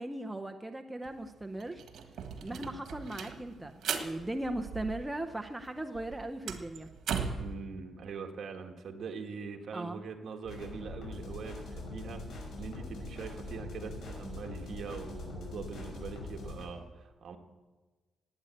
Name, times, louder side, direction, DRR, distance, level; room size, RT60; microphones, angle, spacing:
voice 1, 0.0-1.8 2.4-6.9 9.7-10.0, right 1 dB, 10° right, 5 dB, 0.6 m, -38 dB
sound 1, 1.0-1.1 1.4-5.3 5.6-7.5, right 6 dB, 70° right, 1.6 m, -38 dB
voice 2, 7.3-17.4, right 5 dB, 55° right, 4 dB, 1.7 m, -43 dB
sound 2, 10.4-16.6, left 2 dB, 85° left, 6.1 m, -42 dB
18.5 x 8.7 x 8.4 m, 1.3 s
wide cardioid pair, 180°, 0 cm